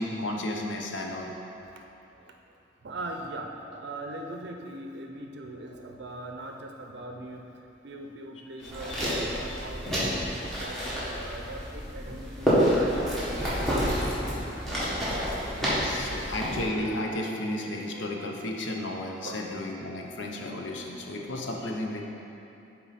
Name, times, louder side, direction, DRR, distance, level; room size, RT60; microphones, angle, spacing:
voice 1, 0.0-1.3 9.2-9.3 15.5-22.0, left 1 dB, 90° left, 1 dB, 0.7 m, -33 dB
voice 2, 2.8-7.4 7.8-14.6 15.3-15.4 15.9-16.3 19.2-19.4 20.0-20.9, right 2 dB, 65° right, 2 dB, 0.5 m, -41 dB
sound 1, 8.6-16.6, equal, ahead, 1.5 m, -29 dB
7.1 x 4.5 x 4.1 m, 2.8 s
head